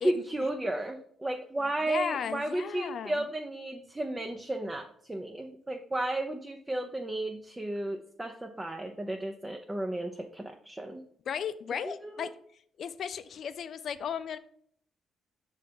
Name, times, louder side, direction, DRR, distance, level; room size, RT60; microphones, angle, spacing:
voice 1, 0.0-11.0 11.8-12.3, right 1 dB, 15° right, 3 dB, 0.6 m, -33 dB
voice 2, 1.9-3.2 11.3-12.3 12.8-14.4, left 7 dB, 60° left, 12 dB, 0.5 m, -35 dB
6.2 x 3.4 x 5.3 m, 0.62 s
cardioid pair, 90°, 0 cm